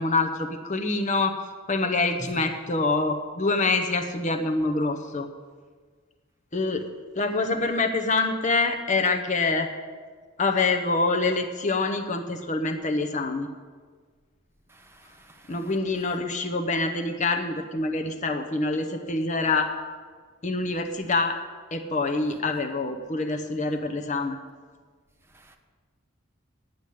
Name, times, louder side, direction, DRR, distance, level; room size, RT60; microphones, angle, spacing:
voice 1, 0.0-1.4 1.7-5.3 6.5-6.8 7.2-9.7 10.4-13.5 15.5-19.7 20.4-21.4 21.7-24.4, left 3 dB, 35° left, 6 dB, 0.7 m, -26 dB
voice 2, 14.7-15.6 25.3-25.6, equal, 10° right, 3 dB, 1.0 m, -45 dB
9.9 x 7.9 x 8.4 m, 1.6 s
head